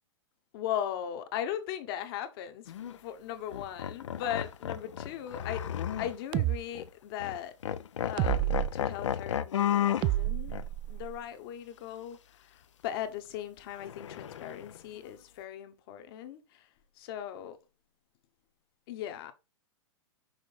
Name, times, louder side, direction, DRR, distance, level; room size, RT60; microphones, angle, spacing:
voice 1, 0.5-5.7 6.0-7.5 8.0-10.6 10.9-16.7 16.9-17.6 18.9-19.3, left 10 dB, 50° left, 1.2 m, -38 dB
sound 1, 2.7-2.9 3.5-6.4 6.8-6.9 7.2-7.4 7.6-10.1 10.5-10.7 13.8-14.8, left 10 dB, 75° left, 0.6 m, -33 dB
sound 2, 6.3-6.6 8.2-8.7 10.0-11.2, right 16 dB, 30° right, 0.3 m, -29 dB
6.3 x 4.8 x 4.2 m
hypercardioid pair, 110°, 16 cm